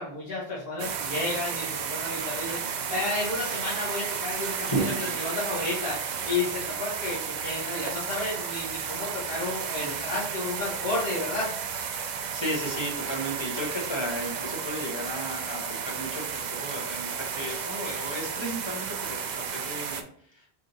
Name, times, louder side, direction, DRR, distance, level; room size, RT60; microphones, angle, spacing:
voice 1, 0.0-11.5, left 2 dB, 70° left, -9 dB, 1.6 m, -32 dB
sound 1, 0.8-20.0, right 6 dB, 55° right, 0.6 m, -33 dB
voice 2, 4.6-5.2 12.3-20.6, right 1 dB, 25° left, -1 dB, 1.0 m, -34 dB
4.8 x 3.9 x 2.7 m, 0.62 s
omnidirectional pair, 1.0 m